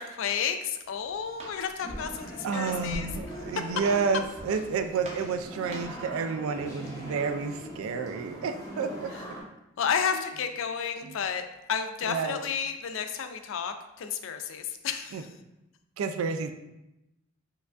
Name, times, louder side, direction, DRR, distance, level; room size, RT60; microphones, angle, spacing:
voice 1, 0.0-3.1 9.8-11.4 11.7-15.3, left 7 dB, 65° left, 7 dB, 0.3 m, -31 dB
Walk footsteps, 0.7-6.1, right 1 dB, 30° right, 0.6 m, -44 dB
sound 1, 1.8-9.4, equal, 15° left, 0.6 m, -42 dB
voice 2, 2.4-9.1 10.1-10.2 11.0-11.2 12.1-12.4 15.1-15.2 16.0-16.5, right 5 dB, 80° right, 8 dB, 0.3 m, -30 dB
4.5 x 2.5 x 2.3 m, 0.91 s
head